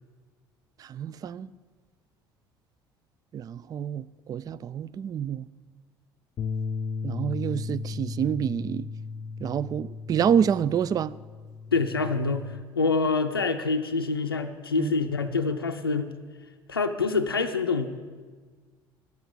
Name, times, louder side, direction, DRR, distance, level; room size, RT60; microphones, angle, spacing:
voice 1, 0.8-1.5 3.3-5.5 7.0-8.9 9.4-11.1 14.8-14.9, right 8 dB, 30° right, 0.3 m, -27 dB
Bass guitar, 6.4-12.6, left 5 dB, 40° left, 0.5 m, -35 dB
voice 2, 11.7-16.1 16.7-17.9, left 4 dB, 90° left, 0.5 m, -26 dB
10.5 x 7.9 x 9.2 m
figure-of-eight pair, 60°, 12 cm